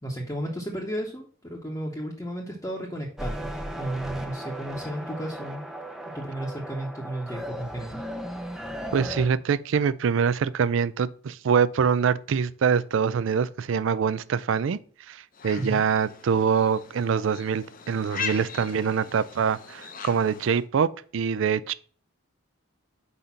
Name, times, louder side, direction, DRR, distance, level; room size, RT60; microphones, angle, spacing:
voice 1, 0.0-3.5 3.8-5.7 6.1-8.0 15.6-15.8, right 1 dB, 15° left, 0.8 m, -33 dB
sound 1, 3.2-9.3, equal, ahead, 0.5 m, -36 dB
voice 2, 8.9-14.8 15.1-21.7, right 6 dB, 70° right, 0.4 m, -24 dB
sound 2, 15.3-20.6, left 6 dB, 40° left, 0.6 m, -39 dB
5.0 x 4.2 x 5.7 m
head